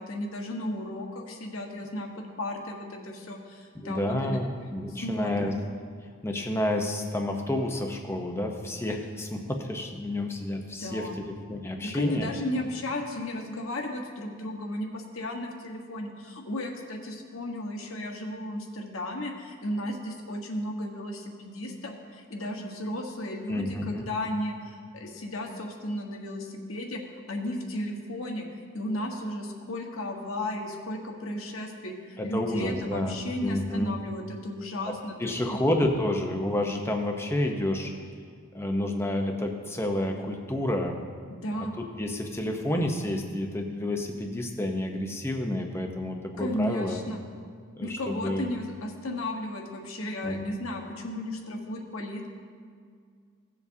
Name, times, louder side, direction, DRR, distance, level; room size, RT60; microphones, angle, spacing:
voice 1, 0.0-2.1 2.4-4.4 4.9-5.5 10.8-11.2 11.8-27.0 27.3-28.4 28.7-35.6 41.3-41.7 46.4-47.2 47.8-52.3, left 1 dB, 75° left, 2 dB, 1.3 m, -34 dB
voice 2, 3.8-5.5 6.2-12.4 23.5-24.0 32.2-34.0 34.8-34.9 35.2-37.9 38.5-41.0 41.6-47.0 47.7-48.5 50.2-50.4, left 1 dB, 10° left, 3 dB, 0.7 m, -30 dB
17.0 x 7.1 x 2.7 m, 2.1 s
head